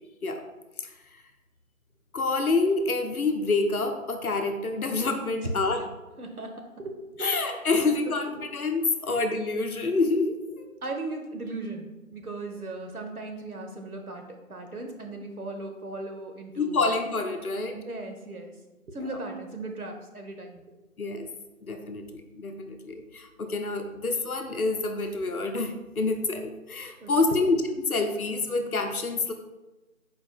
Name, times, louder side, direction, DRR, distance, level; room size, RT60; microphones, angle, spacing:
voice 1, 2.1-5.8 7.2-10.7 16.6-17.8 21.0-21.3 21.6-27.6 27.9-29.3, left 3 dB, 85° left, 5 dB, 0.7 m, -27 dB
voice 2, 6.2-7.4 8.1-8.5 10.5-14.2 14.5-16.9 17.7-18.5 18.9-20.6 27.0-27.5, right 2 dB, 85° right, 3 dB, 1.0 m, -37 dB
4.3 x 2.6 x 4.6 m, 1.1 s
figure-of-eight pair, 180°, 43 cm